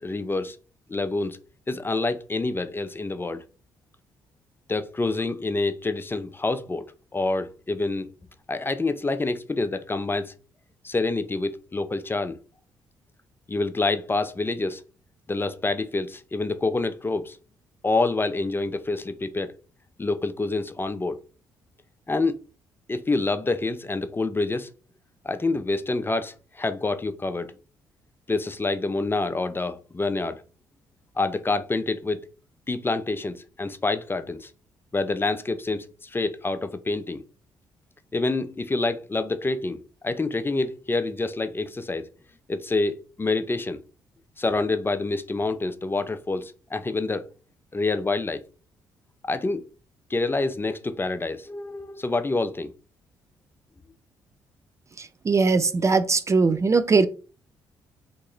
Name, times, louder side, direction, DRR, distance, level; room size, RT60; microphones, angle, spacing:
voice 1, 0.0-0.6 0.9-1.4 1.7-3.4 4.7-6.9 7.1-8.1 8.5-10.3 10.8-12.4 13.5-14.8 15.3-17.4 17.8-19.5 20.0-21.2 22.1-22.4 22.9-24.7 25.2-27.5 28.3-30.4 31.2-32.3 32.7-34.5 34.9-37.2 38.1-42.1 42.5-43.8 44.4-47.3 47.7-48.4 49.2-49.6 50.1-52.7, left 3 dB, 20° left, 0.5 m, -27 dB
voice 2, 55.0-57.1, right 4 dB, 30° right, 0.4 m, -20 dB
3.0 x 2.7 x 3.9 m
hypercardioid pair, 50°, 10 cm